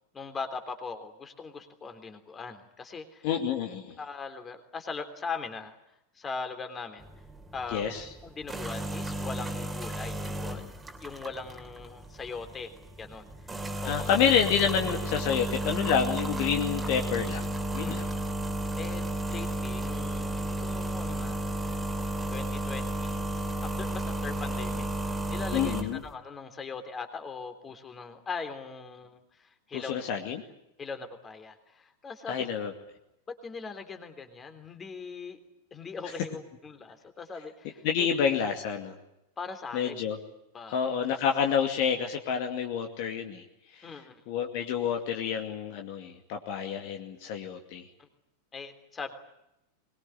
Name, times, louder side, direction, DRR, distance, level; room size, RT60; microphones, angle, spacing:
voice 1, 0.1-3.3 4.0-5.7 6.1-7.1 7.5-7.9 8.2-10.7 11.0-13.5 13.8-13.9 17.8-18.0 18.8-21.5 22.3-23.2 23.5-30.0 30.8-32.4 33.3-35.4 35.7-38.1 39.4-39.9 40.5-40.8 43.8-44.2 48.0-48.1 48.5-49.1, left 4 dB, 20° left, 7 dB, 3.4 m, -40 dB
voice 2, 3.2-4.0 7.7-8.1 13.8-18.1 25.5-26.0 29.7-30.4 32.3-32.7 37.8-38.9 39.7-40.2 40.7-43.4 43.7-43.9 44.3-47.9, left 7 dB, 45° left, 4 dB, 2.4 m, -28 dB
sound 1, 7.0-26.1, right 1 dB, 10° right, 3.1 m, -33 dB
24.0 x 21.5 x 9.3 m, 0.86 s
figure-of-eight pair, 90°, 0 cm